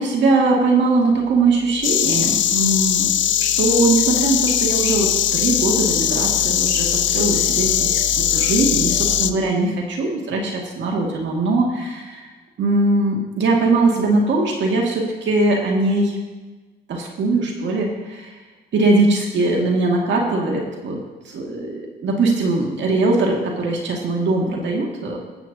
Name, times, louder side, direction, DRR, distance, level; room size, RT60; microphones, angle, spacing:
voice 1, 0.0-3.1 3.4-8.0 8.3-12.2 12.6-16.1 16.9-18.3 18.7-21.0 21.3-25.2, right 2 dB, 65° right, 0 dB, 2.1 m, -20 dB
sound 1, 1.2-9.2, right 5 dB, 25° right, 3.4 m, -34 dB
Insect, 1.8-9.3, left 11 dB, 70° left, 0.6 m, -20 dB
21.5 x 8.3 x 2.8 m, 1.3 s
cardioid pair, 90°, 20 cm